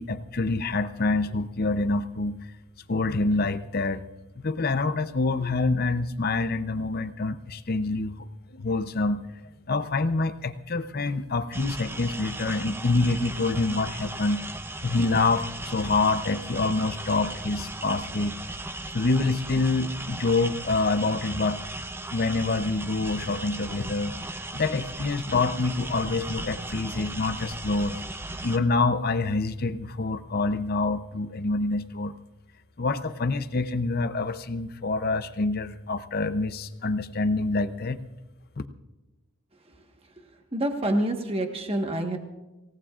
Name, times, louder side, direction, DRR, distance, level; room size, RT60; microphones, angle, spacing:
voice 1, 0.0-2.4 2.9-4.0 4.4-8.1 8.5-9.2 9.7-14.4 14.8-18.4 18.9-21.6 22.1-24.1 24.5-28.0 28.4-32.1 32.8-38.0 38.6-38.7, left 3 dB, 45° left, 11 dB, 0.6 m, -26 dB
sound 1, 11.5-28.6, right 2 dB, 10° right, 0.5 m, -37 dB
voice 2, 40.5-42.2, right 1 dB, 25° right, 4 dB, 1.3 m, -27 dB
26.0 x 17.5 x 2.5 m, 1.1 s
head